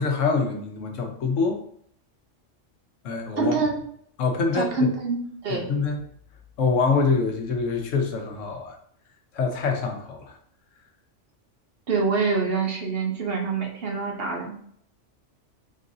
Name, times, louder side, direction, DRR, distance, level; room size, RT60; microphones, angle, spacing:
voice 1, 0.0-1.6 3.0-3.6 4.2-4.8 5.5-6.0 6.6-8.8 9.3-10.4, left 4 dB, 80° left, 3 dB, 1.1 m, -25 dB
voice 2, 3.4-3.8 4.5-5.6 11.9-14.5, right 4 dB, 55° right, 1 dB, 0.9 m, -25 dB
3.9 x 3.8 x 2.7 m, 0.66 s
omnidirectional pair, 1.3 m